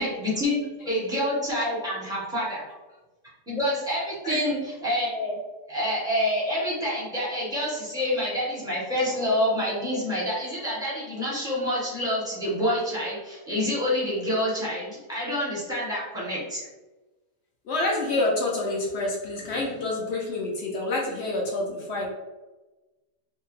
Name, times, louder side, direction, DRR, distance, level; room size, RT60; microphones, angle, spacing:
voice 1, 0.0-2.6 3.5-5.4 5.7-16.7, left 1 dB, 5° right, -9 dB, 0.7 m, -27 dB
voice 2, 17.6-22.1, left 2 dB, 80° left, -3 dB, 0.6 m, -27 dB
2.7 x 2.2 x 3.0 m, 1.1 s
omnidirectional pair, 1.8 m